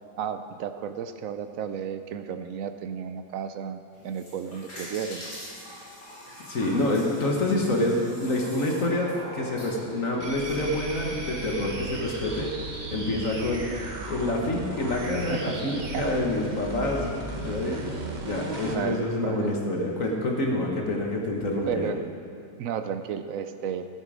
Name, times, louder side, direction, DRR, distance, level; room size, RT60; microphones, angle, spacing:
voice 1, 0.2-5.2 15.2-16.2 18.7-19.5 21.7-22.0 22.6-23.9, right 8 dB, 70° right, 9 dB, 0.8 m, -33 dB
sound 1, 3.9-10.6, equal, 65° left, 4.2 m, -42 dB
voice 2, 6.5-12.5 12.9-13.7 14.1-17.8 18.2-21.9, left 1 dB, 50° left, 0 dB, 1.6 m, -27 dB
sound 2, 10.2-18.8, right 2 dB, 35° right, 0.8 m, -36 dB
12.5 x 9.1 x 5.0 m, 2.5 s
omnidirectional pair, 1.8 m